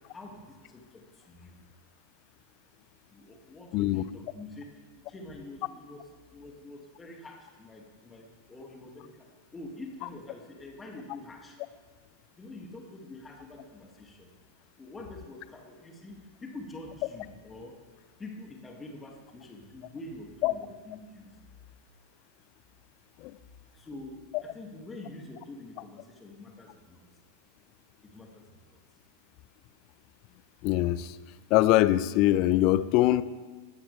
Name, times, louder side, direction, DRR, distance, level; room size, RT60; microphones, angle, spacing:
voice 1, 0.0-1.6 3.1-11.6 12.4-14.3 14.8-17.8 18.2-21.3 23.7-27.1 28.0-28.8, left 2 dB, 15° left, 2 dB, 2.5 m, -46 dB
voice 2, 3.7-4.0 20.4-20.5 23.2-23.4 30.6-31.2 31.5-33.2, left 15 dB, 40° left, 17 dB, 0.5 m, -23 dB
20.5 x 17.0 x 3.5 m, 1.4 s
figure-of-eight pair, 90°, 0 cm